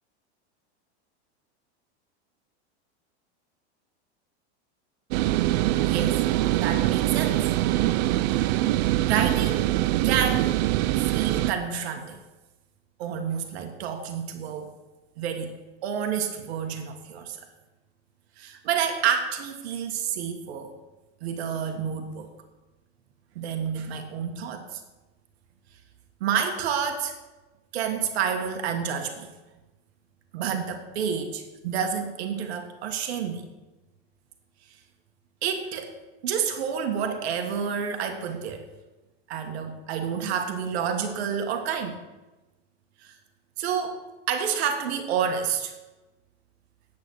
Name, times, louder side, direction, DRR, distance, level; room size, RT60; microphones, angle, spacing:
sound 1, 5.1-11.5, right 15 dB, 40° right, 0.4 m, -23 dB
voice 1, 5.8-7.4 8.2-8.6 9.0-9.7 10.0-10.6 11.0-12.2 13.0-14.7 15.2-15.5 15.8-17.4 18.4-20.7 21.2-22.3 23.3-24.8 26.2-27.1 27.7-29.3 30.3-33.5 35.4-35.9 36.2-38.6 39.3-42.0 43.0-43.1 43.6-44.0 44.3-45.7, right 7 dB, 65° right, 5 dB, 1.7 m, -29 dB
9.5 x 8.6 x 6.3 m, 1.1 s
supercardioid pair, 155°, 34 cm